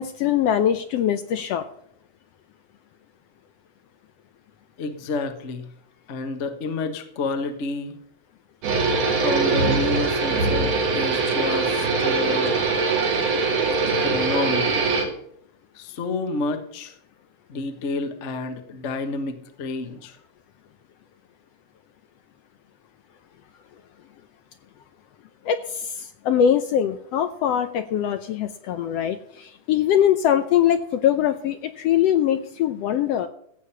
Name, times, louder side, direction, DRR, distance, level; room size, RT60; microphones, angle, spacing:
voice 1, 0.0-1.6 25.4-33.3, left 9 dB, 75° left, 9 dB, 1.6 m, -22 dB
voice 2, 4.8-5.7 6.1-8.0 9.2-12.5 14.0-14.9 15.7-16.9 17.5-20.2, left 3 dB, 45° left, 7 dB, 0.9 m, -29 dB
sound 1, 8.6-15.1, right 4 dB, 90° right, 4.1 m, -22 dB
15.0 x 8.4 x 5.7 m, 0.69 s
omnidirectional pair, 3.4 m